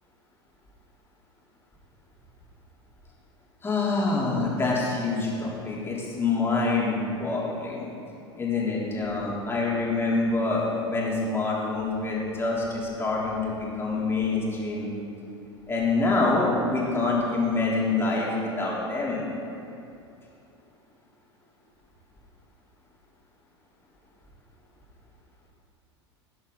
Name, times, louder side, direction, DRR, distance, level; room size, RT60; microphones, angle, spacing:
voice 1, 3.6-7.9 8.4-14.9 15.7-19.3, left 3 dB, 15° left, -5 dB, 3.6 m, -26 dB
18.0 x 10.0 x 4.1 m, 2.8 s
figure-of-eight pair, 80°, 14 cm